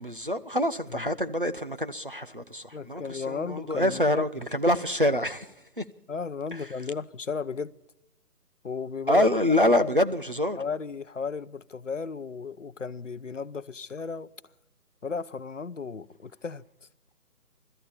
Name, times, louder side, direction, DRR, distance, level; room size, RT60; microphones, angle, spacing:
voice 1, 0.0-5.8 6.5-6.7 9.1-10.6, left 1 dB, 35° right, 0.7 m, -26 dB
voice 2, 2.7-4.2 6.1-7.7 8.6-9.3 9.7-9.9 10.6-14.3 15.0-16.6, left 5 dB, 50° left, 0.8 m, -34 dB
21.0 x 13.5 x 10.0 m
hypercardioid pair, 180°, 47 cm